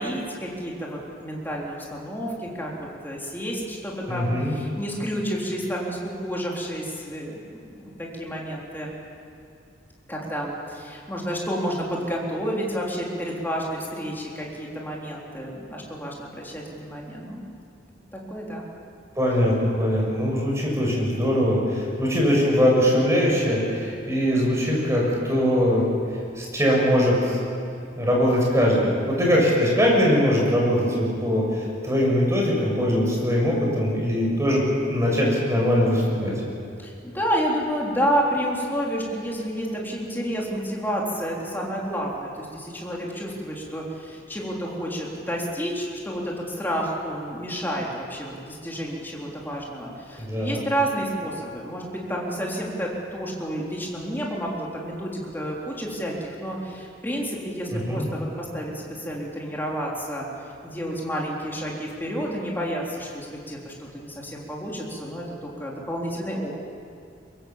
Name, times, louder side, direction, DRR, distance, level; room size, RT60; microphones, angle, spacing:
voice 1, 0.0-9.0 10.1-17.4 18.1-18.7 36.8-60.3 60.6-66.5, equal, 10° left, -3 dB, 3.9 m, -30 dB
voice 2, 4.1-4.6 19.1-25.8 26.3-27.4 28.0-36.3 50.2-50.6 57.7-58.1, equal, 15° right, -3 dB, 6.6 m, -21 dB
23.5 x 23.0 x 7.3 m, 2.5 s
head